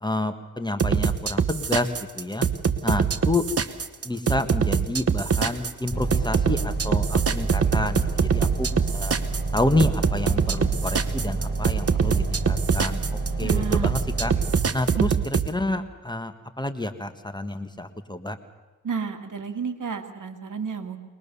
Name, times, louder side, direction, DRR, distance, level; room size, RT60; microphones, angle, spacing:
voice 1, 0.0-2.5 2.8-3.5 4.0-8.0 8.3-9.2 9.5-14.3 14.7-18.4, left 1 dB, 15° left, 8 dB, 1.6 m, -29 dB
sound 1, 0.8-15.5, right 6 dB, 45° right, 1.2 m, -23 dB
sound 2, 5.9-14.6, right 3 dB, 30° right, 5.5 m, -29 dB
voice 2, 13.4-13.9 14.9-15.1 18.8-21.0, right 6 dB, 70° right, 6 dB, 2.2 m, -31 dB
22.5 x 20.5 x 7.1 m, 1.3 s
cardioid pair, 70°, 32 cm